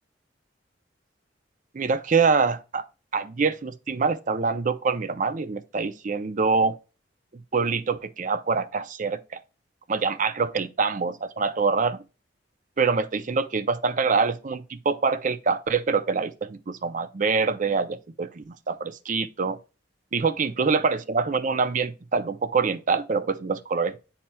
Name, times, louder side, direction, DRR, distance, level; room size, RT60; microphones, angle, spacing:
voice 1, 1.7-2.8 3.1-6.8 7.5-9.2 9.9-12.0 12.8-19.6 20.1-24.0, right 4 dB, 45° right, 0.6 m, -25 dB
10.5 x 4.3 x 2.3 m
head